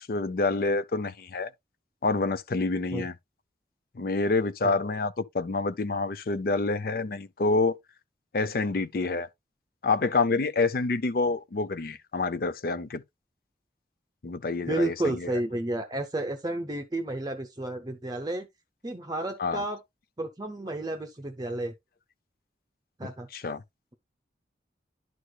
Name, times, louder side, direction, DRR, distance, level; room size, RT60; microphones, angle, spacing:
voice 1, 0.0-1.5 2.0-3.1 4.0-7.8 8.3-9.3 9.8-13.0 14.2-15.3 19.4-19.6 23.3-23.6, left 3 dB, 55° left, 0.5 m, -27 dB
voice 2, 14.7-18.5 18.8-19.8 20.2-21.7 23.0-23.3, right 1 dB, 20° right, 0.6 m, -31 dB
11.0 x 4.8 x 2.3 m
head